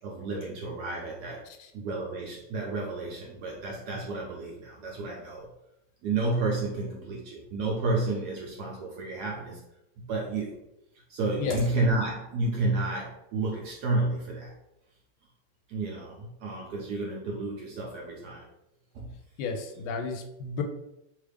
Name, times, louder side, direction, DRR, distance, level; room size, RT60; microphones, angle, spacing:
voice 1, 0.0-1.5 1.7-5.5 6.0-9.6 10.0-10.5 11.1-14.5 15.7-18.5 18.9-19.1, right 2 dB, 80° right, -2 dB, 0.9 m, -31 dB
voice 2, 19.4-20.6, left 5 dB, 80° left, 5 dB, 1.4 m, -32 dB
3.3 x 2.4 x 3.3 m, 0.85 s
omnidirectional pair, 2.3 m